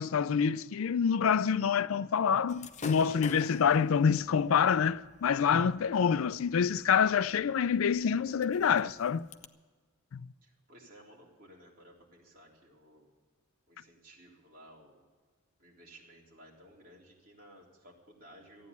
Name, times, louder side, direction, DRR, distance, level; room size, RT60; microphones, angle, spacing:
voice 1, 0.0-9.3 10.1-10.2, left 7 dB, 75° left, 0.4 m, -27 dB
Gunshot gunfire / Fireworks, 2.5-9.5, left 4 dB, 35° left, 0.7 m, -50 dB
voice 2, 5.9-6.3 10.4-13.1 13.7-15.0 15.6-18.7, right 1 dB, 45° right, 3.8 m, -56 dB
14.5 x 9.4 x 8.3 m
head